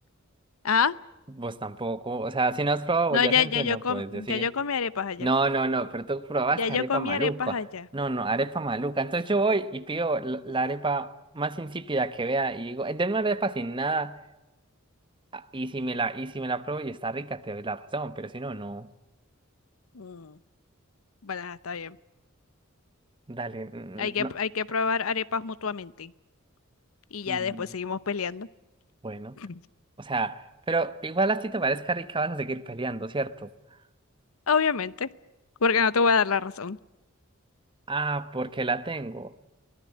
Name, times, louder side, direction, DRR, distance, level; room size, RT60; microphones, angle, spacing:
voice 1, 1.3-4.5 5.2-7.6 7.9-14.2 15.3-18.9 23.3-24.3 27.3-27.7 29.0-29.4 30.0-33.5 37.9-39.3, right 3 dB, 25° right, 1.0 m, -29 dB
voice 2, 3.1-5.3 6.6-7.8 19.9-20.4 21.2-22.0 24.0-26.1 27.1-28.5 29.4-29.6 34.5-35.1 35.6-36.8, left 5 dB, 90° left, 0.8 m, -27 dB
24.0 x 17.5 x 9.6 m
head